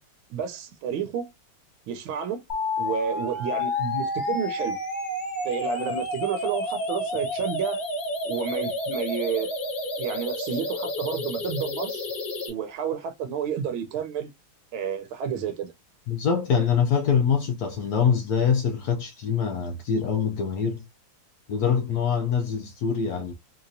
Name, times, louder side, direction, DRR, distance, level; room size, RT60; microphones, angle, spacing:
voice 1, 0.3-1.3 1.9-2.4 2.8-4.8 5.4-7.8 8.2-9.5 10.0-12.1 12.5-14.3 14.7-15.7, right 7 dB, 90° right, 1.5 m, -30 dB
sound 1, 2.5-12.5, left 2 dB, 50° left, 1.5 m, -30 dB
voice 2, 16.1-20.9 21.5-23.3, left 7 dB, 75° left, 0.9 m, -24 dB
3.9 x 2.9 x 2.6 m
omnidirectional pair, 2.2 m